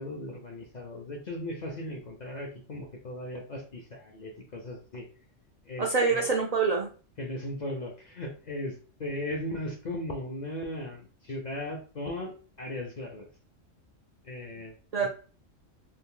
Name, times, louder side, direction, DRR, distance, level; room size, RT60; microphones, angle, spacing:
voice 1, 0.0-5.0 5.7-6.4 7.2-12.3 12.6-13.3 14.2-14.7 15.0-15.1, left 1 dB, 50° left, 0 dB, 0.5 m, -37 dB
voice 2, 5.8-6.9 14.9-15.1, right 4 dB, 75° right, 0 dB, 0.3 m, -25 dB
2.8 x 2.4 x 3.6 m, 0.38 s
omnidirectional pair, 1.3 m